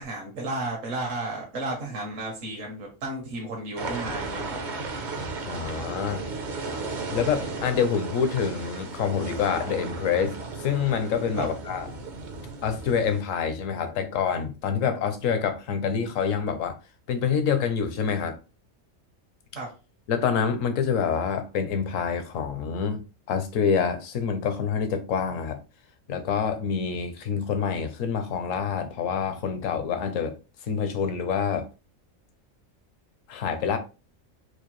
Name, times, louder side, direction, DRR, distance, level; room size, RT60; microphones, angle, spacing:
voice 1, 0.0-4.9 11.3-11.5 19.5-19.7, right 2 dB, 65° right, 1.3 m, -33 dB
sound 1, 3.8-13.2, right 3 dB, 45° right, 0.6 m, -35 dB
voice 2, 5.4-6.2 7.1-11.9 12.6-16.8 17.1-18.4 20.1-23.0 23.3-25.6 26.1-30.3 30.7-31.7 33.3-33.8, left 7 dB, 75° left, 1.1 m, -26 dB
4.7 x 2.4 x 3.0 m
omnidirectional pair, 1.4 m